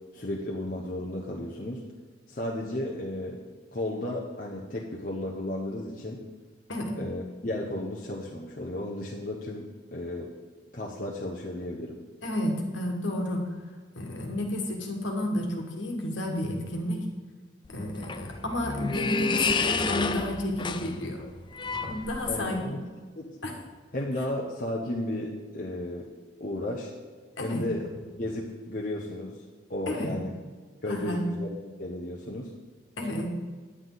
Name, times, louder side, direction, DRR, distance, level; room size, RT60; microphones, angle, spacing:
voice 1, 0.1-1.8 2.3-3.4 3.7-6.2 6.9-10.3 10.7-12.0 22.2-22.8 23.2-23.4 23.9-26.1 26.4-26.9 27.4-27.8 28.2-29.4 29.7-30.3 30.8-32.5, left 1 dB, 45° left, -2 dB, 1.0 m, -34 dB
voice 2, 12.2-13.4 13.9-17.0 17.7-21.2 21.6-22.8 23.4-23.6 27.4-27.6 29.9-30.2 30.9-31.3 33.0-33.3, left 1 dB, 70° left, 2 dB, 1.7 m, -31 dB
sound 1, 17.7-22.6, left 4 dB, 25° left, 0.4 m, -30 dB
9.8 x 9.5 x 4.0 m, 1.5 s
head